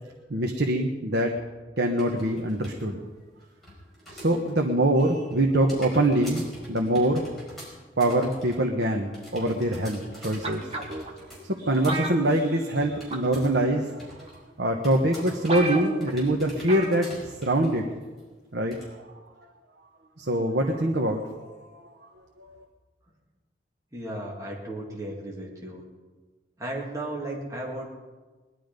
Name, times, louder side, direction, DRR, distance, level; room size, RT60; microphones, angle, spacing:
voice 1, 0.3-1.3 1.8-3.0 4.1-7.2 8.0-10.7 11.4-14.3 14.6-17.8 18.5-18.7 20.2-21.9 22.4-22.5, right 1 dB, 75° right, 2 dB, 1.2 m, -24 dB
sound 1, 2.0-2.8 3.2-4.6 4.9-13.6 13.9-14.4 14.8-17.8 18.2-18.3 18.7-18.9, equal, ahead, 5.2 m, -45 dB
sound 2, 10.4-11.1 11.9-12.8 13.1-13.4 14.3-14.4 14.9-15.0 15.2-15.3 15.5-16.1 16.7-17.0 17.3-17.4, right 2 dB, 35° right, 1.6 m, -32 dB
voice 2, 23.9-25.8 26.6-27.9, right 1 dB, 20° right, -3 dB, 2.1 m, -35 dB
20.0 x 11.5 x 5.2 m, 1.3 s
head